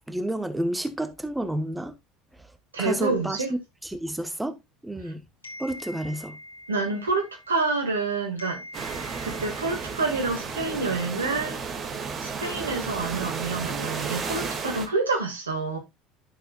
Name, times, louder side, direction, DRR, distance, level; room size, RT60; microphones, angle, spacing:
voice 1, 0.1-2.0 2.3-5.2 5.6-6.4, right 1 dB, 5° right, 1.2 m, -31 dB
voice 2, 2.7-3.5 6.7-8.7 9.2-11.6 12.2-15.8, right 3 dB, 80° right, 2.0 m, -28 dB
sound 1, 5.4-8.0 8.4-10.9, left 1 dB, 85° left, 1.7 m, -45 dB
sound 2, 8.7-14.9, right 5 dB, 40° right, 2.1 m, -33 dB
11.5 x 6.3 x 2.4 m
figure-of-eight pair, 65°, 0 cm